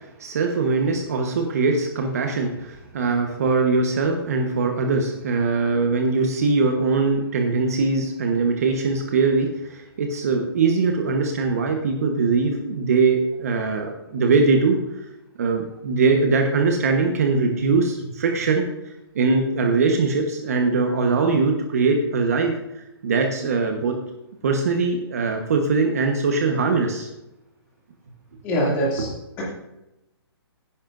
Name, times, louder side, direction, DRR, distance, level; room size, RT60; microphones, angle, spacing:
voice 1, 0.2-14.8 15.4-18.6 19.1-22.5 23.0-23.9 24.4-27.1, right 4 dB, 35° right, 3 dB, 1.2 m, -21 dB
voice 2, 28.4-29.4, equal, 15° left, -4 dB, 2.6 m, -24 dB
16.5 x 10.0 x 2.6 m, 0.91 s
hypercardioid pair, 180°, 14 cm